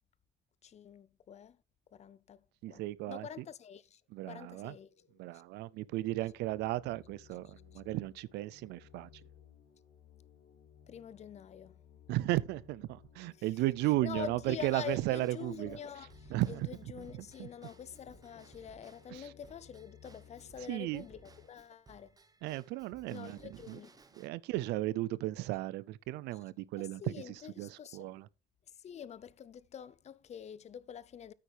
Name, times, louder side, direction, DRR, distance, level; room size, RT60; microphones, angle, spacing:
voice 1, 0.6-1.6 1.9-2.8 3.1-4.0 4.3-4.9 5.3-5.4 7.4-7.8 10.9-11.8 13.3-13.5 13.8-22.2 23.1-24.0 26.8-28.2 28.7-31.3, left 8 dB, 40° left, 0.6 m, -46 dB
voice 2, 2.6-3.3 4.1-4.7 5.2-9.1 12.1-15.8 16.3-16.7 17.0-17.1 17.4-17.5 19.1-19.2 20.7-21.0 22.4-23.4 23.7-23.8 24.2-27.1 27.6-28.3, right 17 dB, 85° right, 0.5 m, -35 dB
sound 1, 4.6-21.5, left 7 dB, 65° left, 2.3 m, -60 dB
Drum kit / Drum / Bell, 14.6-24.3, right 4 dB, 20° right, 1.0 m, -61 dB
9.2 x 8.6 x 3.4 m
cardioid pair, 110°, 17 cm